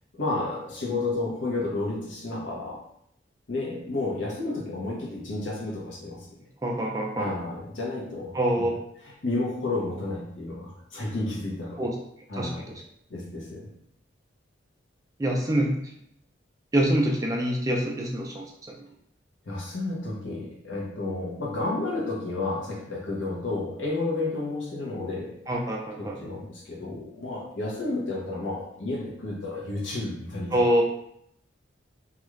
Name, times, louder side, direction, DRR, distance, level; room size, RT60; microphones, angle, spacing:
voice 1, 0.1-2.8 3.5-6.3 7.2-11.9 12.3-12.8 13.1-13.7 19.4-25.4 26.0-30.6, left 2 dB, 75° left, -3 dB, 0.8 m, -31 dB
voice 2, 6.6-7.3 8.3-8.7 11.8-11.9 12.3-12.6 15.2-15.7 16.7-18.7 25.5-26.2 30.5-30.8, right 1 dB, 20° right, -1 dB, 0.3 m, -25 dB
2.4 x 2.3 x 3.0 m, 0.72 s
head